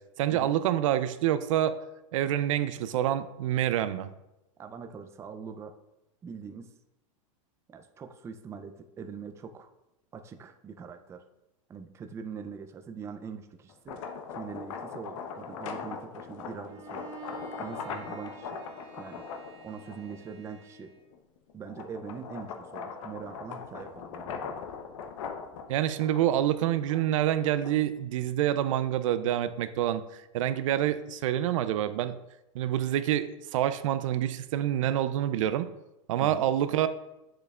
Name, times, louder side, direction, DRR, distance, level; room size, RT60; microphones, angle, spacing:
voice 1, 0.2-1.8 2.1-4.1 25.7-30.0 30.3-32.2 32.5-35.7 36.1-36.9, right 11 dB, 75° right, 12 dB, 0.5 m, -27 dB
voice 2, 4.6-5.8 6.2-6.7 7.7-9.7 10.1-11.2 11.7-14.0 14.3-17.1 17.6-18.6 19.0-19.3 19.6-20.9 21.5-24.5 36.2-36.5, right 6 dB, 15° right, 7 dB, 0.4 m, -42 dB
sound 1, 13.7-20.3 20.8-28.0, left 6 dB, 70° left, 0.8 m, -40 dB
Bowed string instrument, 16.7-21.1, right 7 dB, 50° right, 1.2 m, -49 dB
7.8 x 6.7 x 2.4 m, 0.92 s
supercardioid pair, 130°, 17 cm